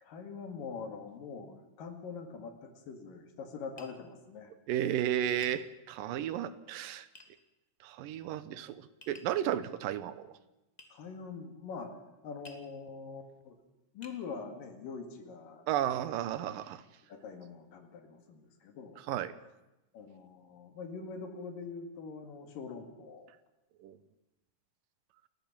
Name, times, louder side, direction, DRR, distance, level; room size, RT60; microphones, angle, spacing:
voice 1, 0.0-4.5 10.9-12.0 12.2-13.6 13.9-15.7 17.1-19.0 19.9-23.3, left 5 dB, 80° left, 6 dB, 3.8 m, -44 dB
Tap, 3.8-4.0 5.4-5.6 7.1-7.3 9.0-9.4 10.8-10.9 12.4-12.7 13.4-13.5 14.0-14.2, left 2 dB, 20° left, 1.1 m, -52 dB
voice 2, 4.7-7.1 7.8-10.3 15.7-16.8 19.1-19.3 23.8-24.0, right 11 dB, 80° right, 14 dB, 2.6 m, -33 dB
29.5 x 14.0 x 7.3 m, 0.98 s
omnidirectional pair, 3.9 m